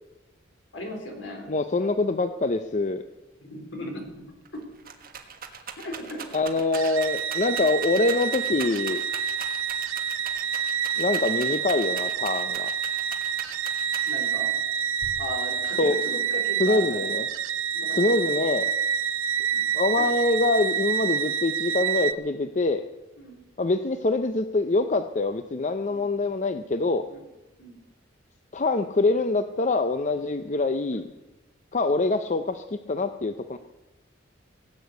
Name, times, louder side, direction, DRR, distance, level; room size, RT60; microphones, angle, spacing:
voice 1, 0.7-1.5 3.4-4.3 4.5-4.6 5.8-6.3 14.0-14.5 15.2-17.1 17.7-18.1 19.5-19.7 20.0-20.1 23.2-23.4 25.9-26.1 27.1-27.2 27.6-27.8 30.9-31.0, left 1 dB, 60° left, 2 dB, 3.9 m, -37 dB
voice 2, 1.5-3.0 6.3-9.0 11.0-12.7 15.8-16.0 16.6-17.3 17.9-18.7 19.7-22.9 23.6-27.1 28.5-31.1 31.7-33.6, left 2 dB, 35° left, 9 dB, 0.5 m, -25 dB
Rattle, 4.1-4.2 4.5-14.4 15.0-15.6, right 6 dB, 45° right, 1.5 m, -40 dB
sound 1, 6.7-22.1, right 7 dB, 80° right, 0.7 m, -28 dB
17.5 x 8.5 x 8.0 m, 1.0 s
head